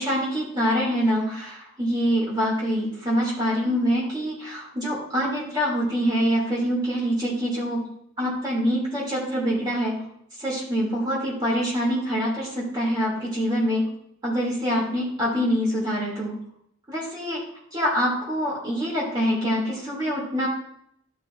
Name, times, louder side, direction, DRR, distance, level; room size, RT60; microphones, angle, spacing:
voice 1, 0.0-7.8 8.2-10.0 10.4-13.9 14.2-16.3 16.9-17.4 17.7-20.5, equal, 20° right, -5 dB, 2.9 m, -25 dB
12.0 x 5.5 x 2.6 m, 0.70 s
head